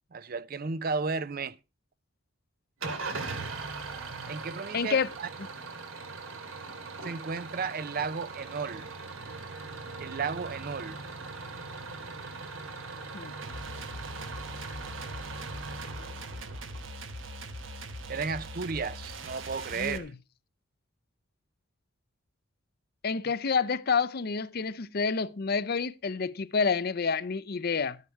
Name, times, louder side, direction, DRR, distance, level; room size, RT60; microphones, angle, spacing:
voice 1, 0.1-1.6 4.3-5.3 7.0-8.9 9.2-9.4 10.0-11.0 18.1-20.1, right 5 dB, 45° right, 0.5 m, -34 dB
Engine starting / Idling, 2.8-17.0, right 3 dB, 90° right, 2.4 m, -40 dB
voice 2, 4.7-5.1 13.1-13.3 19.8-20.1 23.0-28.0, left 5 dB, 50° left, 0.6 m, -28 dB
sound 1, 13.4-20.0, right 1 dB, 70° right, 1.4 m, -41 dB
12.5 x 9.6 x 4.6 m
head